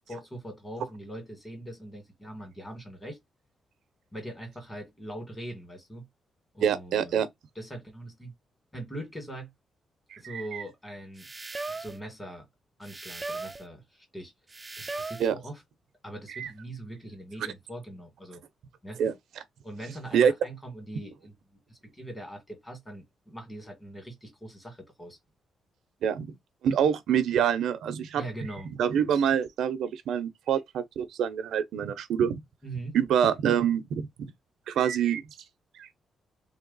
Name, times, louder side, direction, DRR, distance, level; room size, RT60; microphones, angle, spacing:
voice 1, 0.1-3.2 4.1-6.1 6.5-7.2 7.6-8.3 8.7-9.5 10.2-11.3 11.7-12.5 12.8-14.3 14.8-15.6 16.0-18.4 18.8-19.0 19.6-25.2 28.2-28.7 32.6-33.0, right 1 dB, 15° left, 1.8 m, -41 dB
voice 2, 6.6-7.3 10.1-10.6 15.2-15.4 16.4-16.5 19.0-19.1 20.1-20.3 26.0-26.3 26.6-28.2 28.8-32.4 32.9-34.3 34.7-35.2 35.8-35.9, right 8 dB, 85° right, 0.6 m, -26 dB
sound 1, 11.2-12.0 12.8-13.7 14.5-15.3, right 3 dB, 20° right, 0.4 m, -37 dB
3.2 x 2.9 x 3.9 m
cardioid pair, 125°, 0 cm